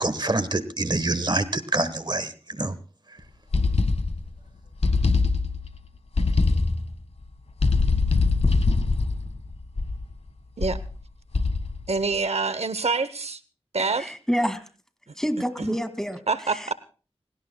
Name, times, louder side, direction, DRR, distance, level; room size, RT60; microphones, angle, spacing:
voice 1, 0.0-2.7, right 2 dB, 45° right, 13 dB, 1.2 m, -26 dB
sound 1, 3.5-4.4 4.8-5.8 6.2-7.0 7.6-10.1 10.6-10.9 11.3-11.9, left 3 dB, 80° left, 1.6 m, -23 dB
voice 2, 11.9-13.4 13.7-14.1 15.6-15.7 16.3-16.7, right 4 dB, 80° right, 15 dB, 0.7 m, -26 dB
voice 3, 14.0-14.6 15.2-16.2, equal, 5° left, 10 dB, 2.1 m, -27 dB
29.5 x 17.5 x 2.2 m, 0.37 s
wide cardioid pair, 50°, 11 cm